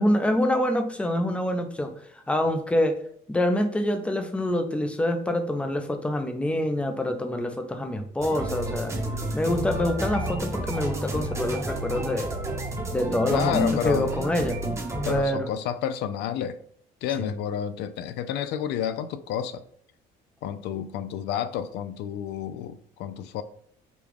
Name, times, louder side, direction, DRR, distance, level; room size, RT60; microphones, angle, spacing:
voice 1, 0.0-1.9 2.3-3.0 3.3-8.9 9.3-12.3 12.9-14.6 15.1-15.5 20.7-20.8, left 1 dB, 5° left, 6 dB, 0.5 m, -26 dB
sound 1, 8.2-15.2, right 1 dB, 15° right, 0.8 m, -31 dB
voice 2, 13.3-14.1 15.0-16.6 17.0-19.6 20.4-23.4, left 9 dB, 85° left, 12 dB, 0.4 m, -30 dB
5.1 x 2.3 x 3.3 m, 0.65 s
cardioid pair, 110°, 17 cm